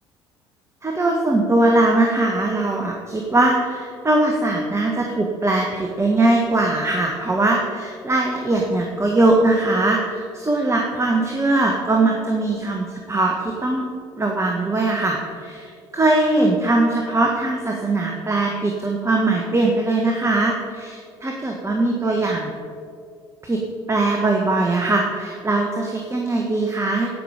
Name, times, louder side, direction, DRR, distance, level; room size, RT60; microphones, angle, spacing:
voice 1, 0.8-13.3 13.6-13.8 14.2-22.5 23.4-23.6 23.9-27.1, right 2 dB, 20° right, 1 dB, 1.5 m, -20 dB
17.0 x 6.0 x 5.0 m, 2.3 s
hypercardioid pair, 55°, 13 cm